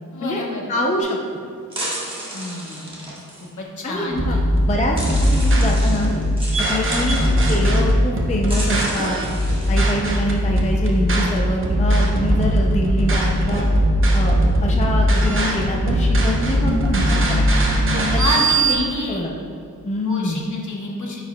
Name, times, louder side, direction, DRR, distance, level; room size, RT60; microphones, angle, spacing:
voice 1, 0.1-0.7 2.3-3.1 3.6-4.4 18.2-19.2 20.1-21.3, left 2 dB, 60° left, -1 dB, 1.0 m, -29 dB
voice 2, 0.7-1.2 3.8-4.4 4.7-6.1 6.7-7.2 7.5-9.2 9.7-13.7 14.1-17.5 18.1-19.3 19.8-20.4, left 1 dB, 20° left, 0 dB, 0.4 m, -25 dB
sound 1, 1.0-1.1 1.7-3.5 4.3-4.4 5.0-7.7 8.4-10.0, right 1 dB, 15° right, 1.2 m, -33 dB
sound 2, 4.1-18.8, equal, 40° right, 0.7 m, -19 dB
sound 3, 9.7-18.0, equal, 55° right, 1.4 m, -33 dB
9.3 x 4.6 x 2.2 m, 2.5 s
wide cardioid pair, 180°, 34 cm